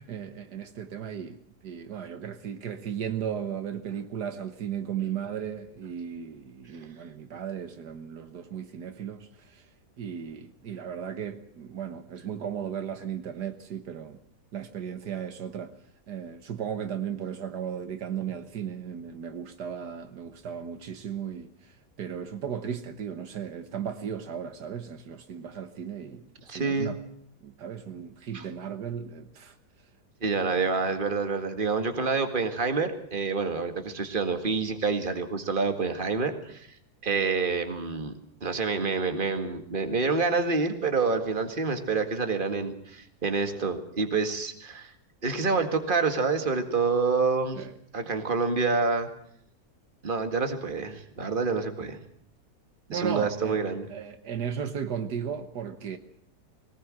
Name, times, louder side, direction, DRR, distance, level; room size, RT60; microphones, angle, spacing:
voice 1, 0.0-9.7 10.0-14.2 14.5-15.7 16.1-27.0 27.4-29.6 30.5-30.7 47.6-47.7 52.9-56.0, right 8 dB, 75° right, 1.8 m, -36 dB
voice 2, 26.5-26.9 28.3-28.4 30.2-36.7 37.0-38.1 38.4-44.9 45.2-47.6 47.9-49.1 50.0-52.0 52.9-53.9, right 4 dB, 30° right, 2.1 m, -27 dB
21.0 x 19.0 x 7.7 m
omnidirectional pair, 1.8 m